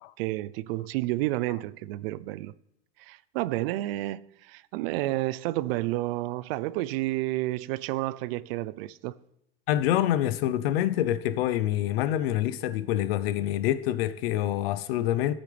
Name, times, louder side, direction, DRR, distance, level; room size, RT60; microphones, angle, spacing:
voice 1, 0.2-2.5 3.0-9.1, right 17 dB, 75° right, 0.5 m, -30 dB
voice 2, 9.7-15.3, left 12 dB, 85° left, 0.7 m, -26 dB
13.5 x 8.9 x 3.3 m
supercardioid pair, 130°, 29 cm